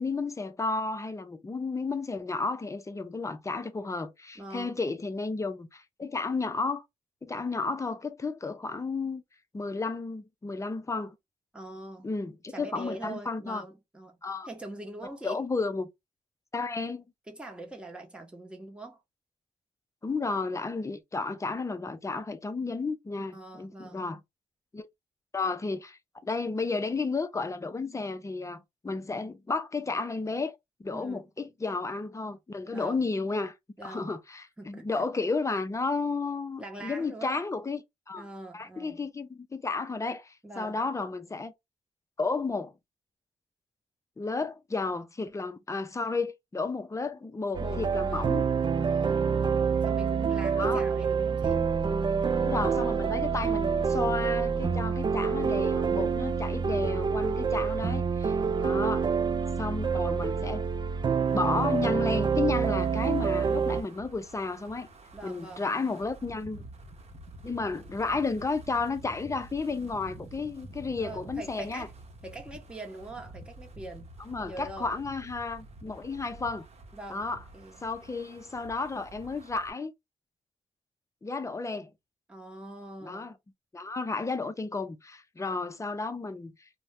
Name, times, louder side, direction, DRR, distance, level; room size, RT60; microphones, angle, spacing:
voice 1, 0.0-6.8 7.2-9.2 9.5-11.2 12.0-13.6 14.2-14.5 15.2-15.9 16.5-17.0 20.0-24.2 24.7-24.9 25.3-33.5 33.8-38.3 38.5-41.5 42.2-42.7 44.2-48.4 50.6-50.8 52.4-59.1 59.6-60.6 61.3-64.9 65.2-66.6 67.4-71.9 74.3-76.7 77.1-77.4 77.8-79.9 81.2-81.9 83.0-83.3 83.7-86.5, left 3 dB, 25° left, 0.5 m, -32 dB
voice 2, 4.4-4.8 11.5-12.1 12.5-14.2 14.4-15.4 17.3-19.0 23.3-24.1 30.9-31.3 32.7-33.1 33.8-34.1 34.6-35.1 36.6-37.4 38.2-39.1 40.4-40.8 47.2-47.3 47.6-48.3 48.8-49.3 49.8-51.6 58.3-58.8 65.1-65.7 71.0-71.9 72.2-74.1 74.4-75.0 76.9-77.3 77.5-77.8 82.3-83.3 85.4-85.7, right 2 dB, 10° right, 0.8 m, -43 dB
sound 1, 47.5-63.8, right 6 dB, 40° right, 0.4 m, -27 dB
Wind, 61.3-79.7, right 2 dB, 55° right, 0.8 m, -49 dB
2.6 x 2.1 x 3.2 m
cardioid pair, 80°, 13 cm